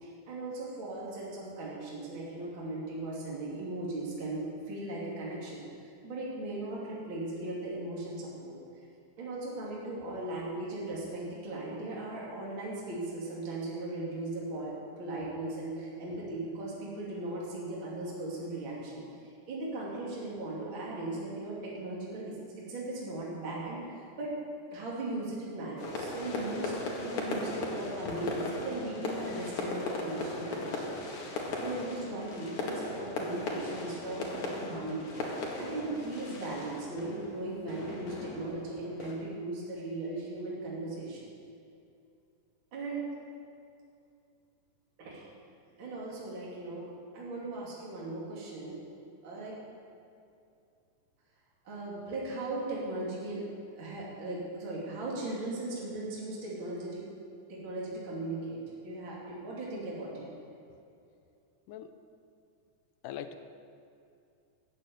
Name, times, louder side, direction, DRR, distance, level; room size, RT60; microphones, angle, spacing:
voice 1, 0.0-8.6 9.2-24.4 24.7-30.9 31.6-41.2 42.7-43.0 45.0-45.3 45.8-48.8 49.2-49.5 51.6-53.4 53.7-57.0 57.5-60.3, right 2 dB, 40° right, -5 dB, 3.3 m, -38 dB
sound 1, 25.8-39.1, left 2 dB, 65° left, 3.3 m, -37 dB
voice 2, 63.0-63.4, left 10 dB, 90° left, 9 dB, 2.3 m, -40 dB
14.0 x 7.9 x 9.4 m, 2.5 s
omnidirectional pair, 3.7 m